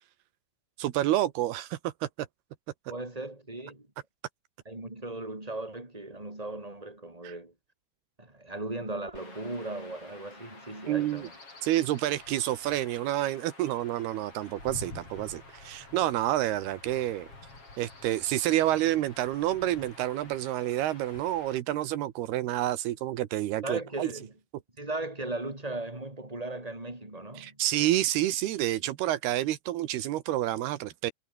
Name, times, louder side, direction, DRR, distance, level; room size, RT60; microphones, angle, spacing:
voice 1, 0.8-2.1 7.2-7.3 10.9-11.3 11.6-17.3 17.8-24.1 27.4-31.1, right 14 dB, 80° right, 3.2 m, -29 dB
voice 2, 2.9-3.9 4.7-7.5 8.2-11.3 23.6-24.3 24.8-27.6, right 2 dB, 10° right, 5.4 m, -37 dB
Chirp tweet / Wind / Stream, 9.1-21.6, left 3 dB, 35° left, 8.2 m, -49 dB
omnidirectional pair, 4.5 m